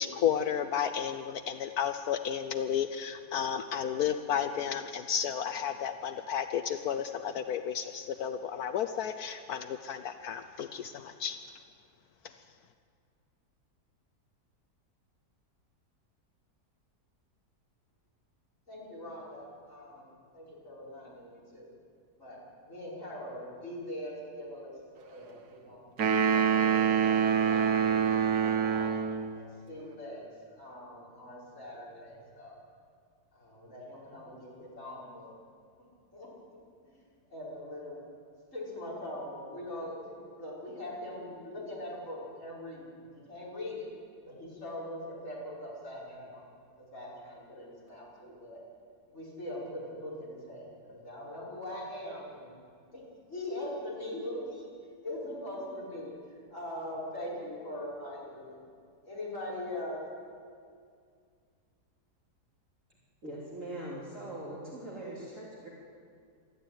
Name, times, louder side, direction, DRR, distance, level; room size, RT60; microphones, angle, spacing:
voice 1, 0.0-11.4, left 8 dB, 70° left, 9 dB, 1.2 m, -32 dB
voice 2, 18.7-20.1 20.3-21.7 22.2-25.9 26.3-28.9 29.3-30.2 30.5-32.6 33.3-35.3 36.1-37.0 37.3-38.0 38.5-40.0 40.3-43.9 44.3-46.4 46.8-48.6 49.1-52.6 52.9-53.0 53.3-54.7 55.0-58.6 59.0-60.0, left 1 dB, 50° left, -5 dB, 6.3 m, -42 dB
sound 1, 26.0-29.3, right 7 dB, 75° right, 1.7 m, -26 dB
voice 3, 63.2-65.7, right 1 dB, 50° right, -6 dB, 3.6 m, -41 dB
20.0 x 14.0 x 9.2 m, 2.2 s
omnidirectional pair, 1.7 m